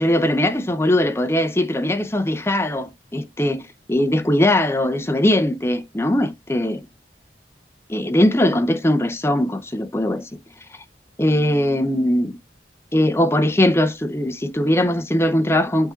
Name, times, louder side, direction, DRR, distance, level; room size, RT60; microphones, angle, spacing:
voice 1, 0.0-3.6 3.9-6.8 7.9-10.3 11.2-12.4 12.9-15.9, left 1 dB, 15° left, 0.6 m, -20 dB
11.0 x 3.7 x 2.5 m
head